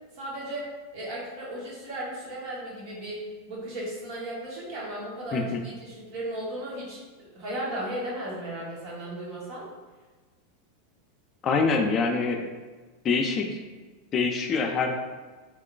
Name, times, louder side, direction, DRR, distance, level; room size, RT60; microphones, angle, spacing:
voice 1, 0.1-9.7, right 1 dB, 55° right, -5 dB, 1.4 m, -36 dB
voice 2, 11.4-12.5 13.0-13.6 14.1-15.0, left 4 dB, 35° left, 4 dB, 0.4 m, -25 dB
3.6 x 3.1 x 2.2 m, 1.3 s
hypercardioid pair, 95°, 0 cm